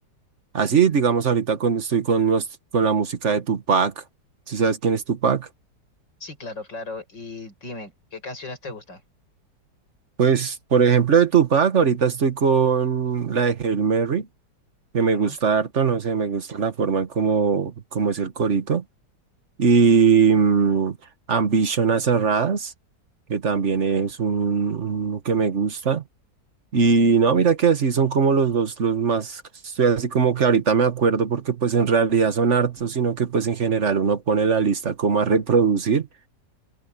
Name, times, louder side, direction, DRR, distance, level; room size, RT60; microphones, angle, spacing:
voice 1, 0.5-2.5 2.7-4.0 4.5-5.5 10.2-14.3 14.9-18.8 19.6-21.0 21.3-22.7 23.3-26.0 26.7-36.1, right 6 dB, 45° right, 1.6 m, -20 dB
voice 2, 6.2-9.0 15.0-15.4, left 3 dB, 85° left, 8.0 m, -37 dB
omnidirectional pair, 1.9 m